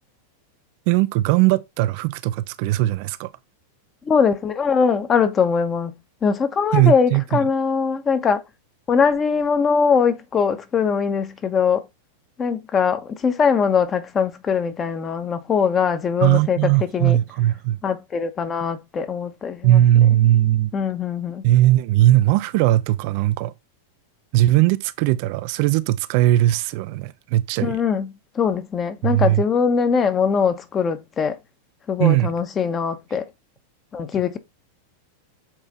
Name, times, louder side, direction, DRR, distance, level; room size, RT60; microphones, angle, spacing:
voice 1, 0.9-3.3 6.7-7.4 16.2-17.8 19.6-20.7 21.4-23.5 24.3-27.8 29.0-29.4 32.0-32.3, right 14 dB, 45° right, 0.4 m, -18 dB
voice 2, 4.0-5.9 6.2-8.4 8.9-11.8 12.4-17.2 17.8-19.8 20.7-21.4 27.6-31.4 31.9-33.2 33.9-34.4, left 6 dB, 25° left, 1.1 m, -21 dB
7.3 x 4.5 x 4.1 m
figure-of-eight pair, 90°, 0 cm